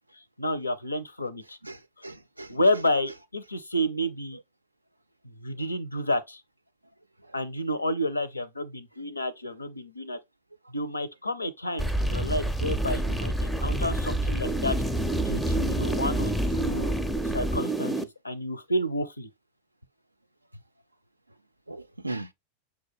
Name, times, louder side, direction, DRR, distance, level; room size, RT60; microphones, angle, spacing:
voice 1, 0.4-1.6 2.5-4.4 5.2-6.4 7.3-10.2 10.7-14.8 15.2-16.3 16.6-17.0 17.2-19.3, left 1 dB, 80° left, 0.5 m, -30 dB
voice 2, 1.6-2.6 21.7-22.3, right 2 dB, 85° right, 0.4 m, -38 dB
sound 1, 11.8-18.0, right 1 dB, 5° left, 0.5 m, -27 dB
6.2 x 2.3 x 3.4 m
figure-of-eight pair, 90°, 0 cm